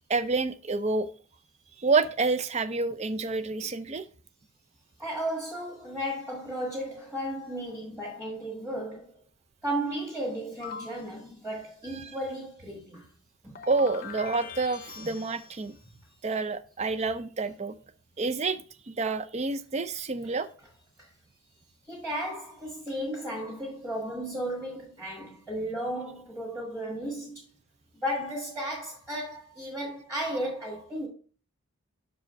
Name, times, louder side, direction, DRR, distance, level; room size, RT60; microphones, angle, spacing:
voice 1, 0.1-1.1 1.8-4.1 12.0-12.1 13.7-15.7 16.2-17.7 18.2-20.5, right 3 dB, 30° right, 0.4 m, -28 dB
voice 2, 5.0-9.1 9.6-13.0 13.4-13.6 21.0-21.1 21.9-27.4 28.0-31.1, right 1 dB, 10° right, 1.9 m, -34 dB
sound 1, 10.6-11.1 13.5-15.7, left 6 dB, 40° left, 0.7 m, -42 dB
6.0 x 4.8 x 5.1 m
head